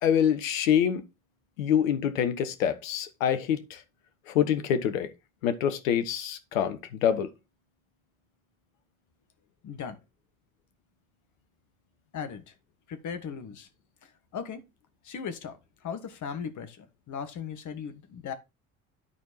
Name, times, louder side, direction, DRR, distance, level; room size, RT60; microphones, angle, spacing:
voice 1, 0.0-1.0 1.6-3.8 4.3-5.1 5.4-7.3, left 9 dB, 75° left, 1.1 m, -26 dB
voice 2, 9.6-10.0 12.1-12.5 12.9-13.7 14.0-14.6 15.0-18.3, left 7 dB, 45° left, 1.6 m, -38 dB
10.5 x 4.5 x 4.2 m
figure-of-eight pair, 55°, 40 cm